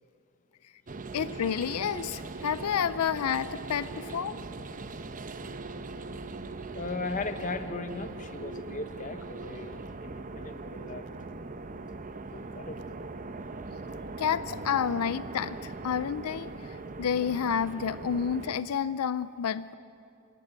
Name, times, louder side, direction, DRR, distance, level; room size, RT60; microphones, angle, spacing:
sound 1, 0.9-18.6, right 3 dB, 35° right, 0.8 m, -40 dB
voice 1, 1.1-4.4 14.2-19.7, left 7 dB, 85° left, 16 dB, 0.5 m, -30 dB
voice 2, 6.7-11.1 12.3-12.8, left 3 dB, 35° left, 9 dB, 1.2 m, -37 dB
27.0 x 17.0 x 9.4 m, 2.7 s
head